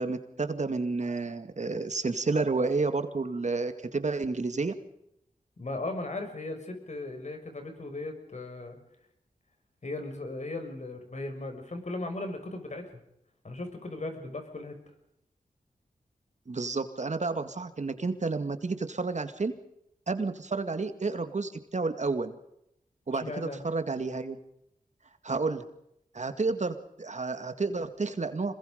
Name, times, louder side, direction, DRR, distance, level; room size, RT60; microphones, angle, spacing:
voice 1, 0.0-4.7 16.5-19.5 20.1-22.3 23.1-24.4 25.2-25.6 26.1-28.5, right 3 dB, 50° right, 9 dB, 2.1 m, -30 dB
voice 2, 5.6-8.8 9.8-13.0 13.4-14.7 23.2-23.6, left 2 dB, 50° left, 6 dB, 5.9 m, -37 dB
26.5 x 22.0 x 5.2 m, 0.80 s
cardioid pair, 60°, 15 cm